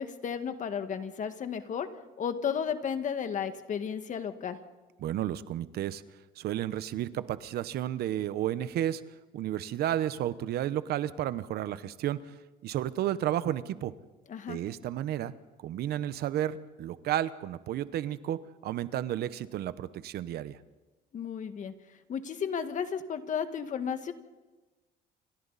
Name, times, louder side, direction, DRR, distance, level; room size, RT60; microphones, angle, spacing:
voice 1, 0.0-1.9 2.2-4.6 14.3-14.6 21.1-24.1, left 7 dB, 50° left, 8 dB, 1.8 m, -33 dB
voice 2, 5.0-6.0 6.4-9.0 9.3-12.3 12.6-13.9 14.5-15.3 15.6-20.6, right 12 dB, 70° right, 14 dB, 1.0 m, -32 dB
28.5 x 25.5 x 4.2 m, 1.2 s
cardioid pair, 110°, 17 cm